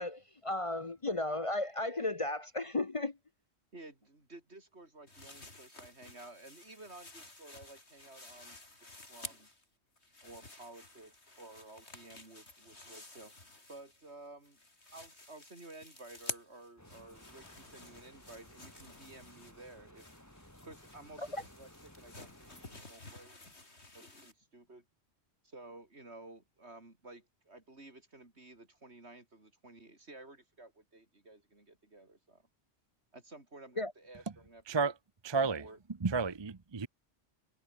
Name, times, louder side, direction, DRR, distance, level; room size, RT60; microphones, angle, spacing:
voice 1, 0.0-3.2 21.2-21.4 33.8-33.9, left 2 dB, 30° left, 0.9 m, -35 dB
voice 2, 3.7-9.5 10.2-14.6 14.9-20.1 20.4-23.4 23.7-24.9 25.4-32.5 33.1-34.9 35.3-35.8, right 2 dB, 75° right, 4.8 m, -54 dB
sound 1, 5.1-9.6 10.0-14.1 14.4-24.3, left 2 dB, 75° left, 4.7 m, -51 dB
sound 2, 16.8-22.8, equal, 15° left, 5.7 m, -58 dB
voice 3, 35.2-35.6 36.0-36.9, right 4 dB, 25° right, 0.8 m, -31 dB
omnidirectional pair, 1.1 m